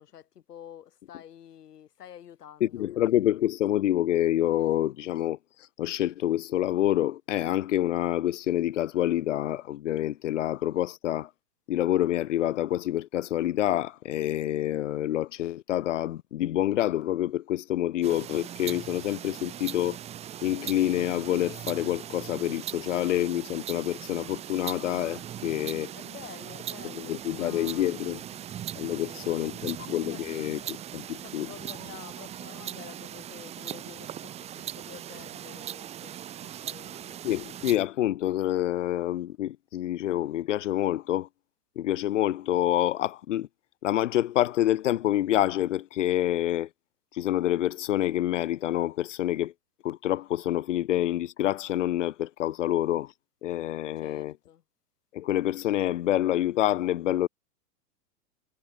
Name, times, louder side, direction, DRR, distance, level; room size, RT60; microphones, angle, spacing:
voice 1, 0.0-2.9 25.9-28.4 29.0-30.8 31.1-37.2 54.0-54.6, left 10 dB, 85° left, 6.3 m, -49 dB
voice 2, 2.6-5.4 5.8-11.3 11.7-20.0 20.4-25.9 26.8-28.2 28.7-30.6 30.9-31.5 37.2-41.3 41.8-43.5 43.8-46.7 47.1-49.5 49.8-53.1 53.4-54.3 55.1-57.3, left 13 dB, 50° left, 0.9 m, -27 dB
sound 1, 18.0-37.8, right 11 dB, 15° right, 3.0 m, -40 dB
supercardioid pair, 175°, 46 cm